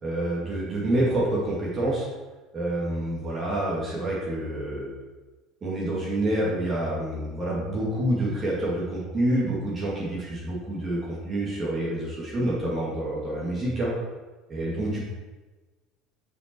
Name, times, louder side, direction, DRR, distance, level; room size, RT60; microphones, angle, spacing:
voice 1, 0.0-2.1 2.5-4.9 5.6-13.9 14.5-15.0, right 1 dB, 25° right, -6 dB, 2.3 m, -27 dB
7.0 x 6.0 x 4.5 m, 1.3 s
cardioid pair, 145°, 0 cm